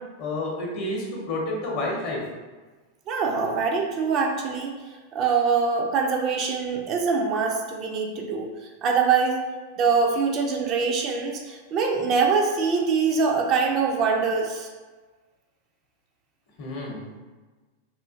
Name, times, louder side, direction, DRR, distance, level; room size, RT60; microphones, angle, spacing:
voice 1, 0.2-2.2 16.6-17.0, left 2 dB, 45° left, -2 dB, 0.8 m, -29 dB
voice 2, 3.1-4.7 5.1-9.4 9.8-14.7, right 5 dB, 35° right, 1 dB, 0.4 m, -24 dB
3.0 x 2.4 x 2.4 m, 1.3 s
figure-of-eight pair, 90°, 0 cm